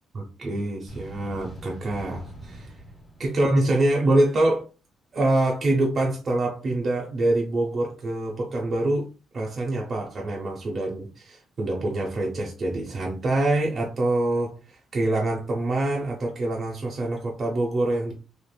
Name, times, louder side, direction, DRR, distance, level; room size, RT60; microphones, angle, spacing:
voice 1, 0.1-2.7 3.2-4.7 5.1-9.1 9.3-18.1, right 1 dB, 45° right, -1 dB, 0.7 m, -25 dB
sound 1, 0.9-4.3, right 1 dB, 40° left, 1.3 m, -43 dB
3.2 x 2.4 x 2.2 m, 0.33 s
cardioid pair, 90°, 0 cm